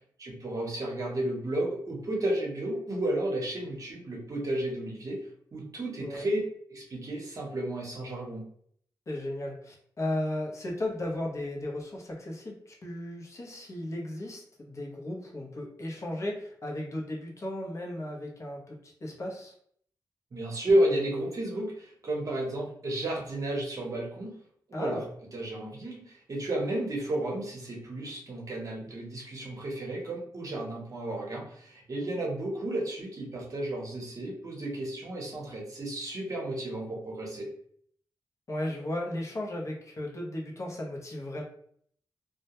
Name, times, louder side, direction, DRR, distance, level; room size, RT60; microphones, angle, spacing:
voice 1, 0.2-5.2 5.5-6.4 6.7-8.4 20.3-24.3 24.7-25.0 25.3-37.5, right 1 dB, 50° right, -2 dB, 0.8 m, -32 dB
voice 2, 9.1-19.5 24.7-25.1 38.5-41.4, left 1 dB, 40° left, -2 dB, 0.7 m, -35 dB
2.2 x 2.1 x 2.8 m, 0.63 s
wide cardioid pair, 120°, 8 cm